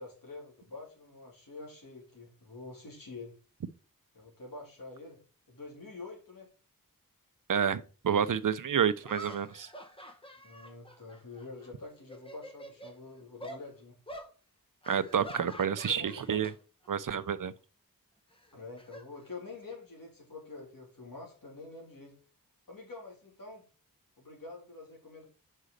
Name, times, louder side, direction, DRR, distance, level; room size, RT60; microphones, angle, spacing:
voice 1, 0.0-3.4 4.1-5.2 5.5-6.5 10.4-14.0 16.0-16.5 18.5-22.1 22.7-23.7 24.2-25.3, left 3 dB, 70° left, 3.5 m, -47 dB
voice 2, 7.5-9.7 14.9-16.5 16.9-17.5, right 8 dB, 65° right, 0.6 m, -29 dB
sound 1, 8.2-8.3 9.0-11.7 12.0-13.0 13.4-13.6 14.1-14.3 14.8-16.5 16.8-17.1 18.3-19.7, equal, 15° left, 1.2 m, -47 dB
5.5 x 4.8 x 6.5 m
wide cardioid pair, 85°, 35 cm